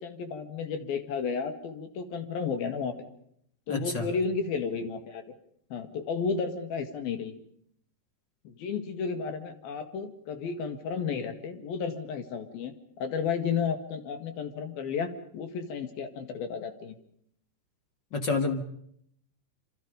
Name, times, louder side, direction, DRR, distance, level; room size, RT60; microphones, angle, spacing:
voice 1, 0.0-3.0 3.7-5.4 5.7-7.4 8.5-17.0, left 5 dB, 65° left, 8 dB, 3.6 m, -33 dB
voice 2, 3.7-4.1 18.1-18.6, left 3 dB, 45° left, 5 dB, 1.5 m, -28 dB
27.0 x 26.5 x 5.2 m, 0.70 s
omnidirectional pair, 4.8 m